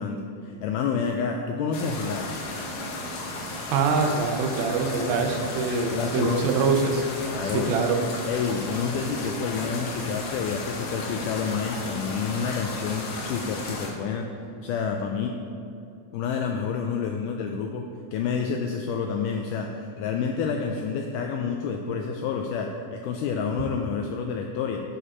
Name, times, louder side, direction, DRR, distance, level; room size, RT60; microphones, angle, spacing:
voice 1, 0.0-2.4 5.8-6.4 7.2-7.7 8.3-14.3 14.6-15.4 16.1-24.8, left 6 dB, 85° left, 3 dB, 1.8 m, -29 dB
sound 1, 1.7-13.9, left 2 dB, 70° left, 1.5 m, -34 dB
voice 2, 3.7-7.1 7.5-8.0, right 4 dB, 85° right, 3 dB, 2.6 m, -24 dB
11.5 x 4.9 x 4.2 m, 2.5 s
omnidirectional pair, 4.2 m